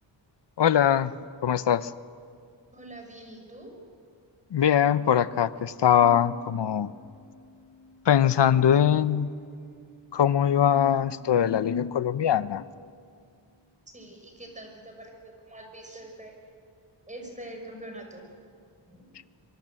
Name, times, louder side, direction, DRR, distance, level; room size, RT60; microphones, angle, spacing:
voice 1, 0.6-1.1 1.4-1.9 4.5-6.9 8.1-9.3 10.1-12.6, left 9 dB, 65° left, 15 dB, 0.8 m, -22 dB
voice 2, 2.7-3.7 13.9-16.4 17.1-18.3 18.9-19.1, right 1 dB, 15° right, 2 dB, 5.6 m, -44 dB
sound 1, 6.0-13.1, right 1 dB, 20° left, 2.5 m, -49 dB
25.0 x 23.5 x 7.8 m, 2.3 s
wide cardioid pair, 115°, 45 cm